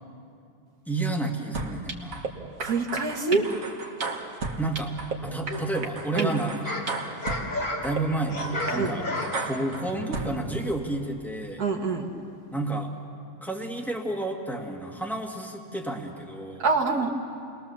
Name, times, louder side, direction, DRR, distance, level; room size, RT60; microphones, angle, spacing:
voice 1, 0.9-2.2 4.6-4.9 5.2-6.7 7.8-9.1 9.4-11.6 12.5-12.9 13.4-16.7, right 2 dB, ahead, 1 dB, 2.0 m, -31 dB
sound 1, 1.5-2.3 2.6-5.2 5.5-7.4 7.8-8.0 8.4-8.7 9.2-10.3, right 4 dB, 60° right, 1.9 m, -33 dB
voice 2, 2.6-3.4 6.1-6.3 8.7-9.0 11.6-12.1 16.6-17.1, right 4 dB, 75° right, 2 dB, 2.2 m, -25 dB
sound 2, 5.2-5.9 6.4-10.6, left 1 dB, 70° left, 3.6 m, -33 dB
29.0 x 21.0 x 7.2 m, 2.5 s
omnidirectional pair, 1.6 m